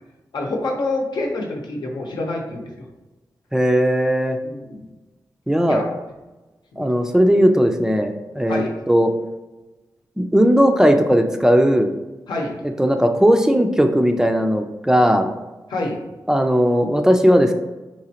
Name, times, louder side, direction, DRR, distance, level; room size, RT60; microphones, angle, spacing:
voice 1, 0.3-2.9 4.4-4.9 5.7-5.9 6.7-6.9 8.5-8.7 12.3-12.6 15.7-16.0, left 2 dB, 85° left, 0 dB, 0.8 m, -27 dB
voice 2, 3.5-4.4 5.5-5.8 6.8-9.1 10.2-11.9 12.8-15.3 16.3-17.5, equal, 10° right, 5 dB, 0.3 m, -17 dB
4.9 x 3.1 x 2.8 m, 1.1 s
wide cardioid pair, 135°, 7 cm